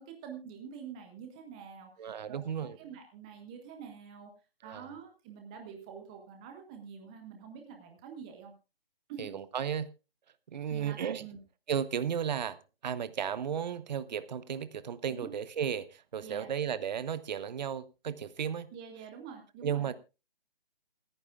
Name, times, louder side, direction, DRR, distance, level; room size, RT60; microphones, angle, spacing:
voice 1, 0.0-4.3 4.6-8.5 9.1-9.4 10.7-11.4 15.1-15.3 16.2-16.5 18.7-19.9, right 7 dB, 5° right, 0.5 m, -47 dB
voice 2, 2.0-2.8 4.6-4.9 9.2-9.9 10.5-11.3 11.7-12.6 12.8-18.7 19.6-19.9, right 8 dB, 45° right, 0.9 m, -34 dB
27.5 x 9.5 x 2.4 m
figure-of-eight pair, 150°, 31 cm